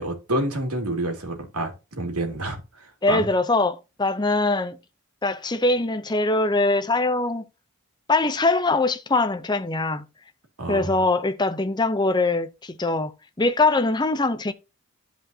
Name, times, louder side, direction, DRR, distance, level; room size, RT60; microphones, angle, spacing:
voice 1, 0.0-3.3 10.6-11.0, right 1 dB, 80° right, 2.7 m, -28 dB
voice 2, 3.0-4.8 5.2-7.4 8.1-10.0 10.7-13.1 13.4-14.5, left 2 dB, 20° left, 0.6 m, -22 dB
13.0 x 5.2 x 2.8 m
head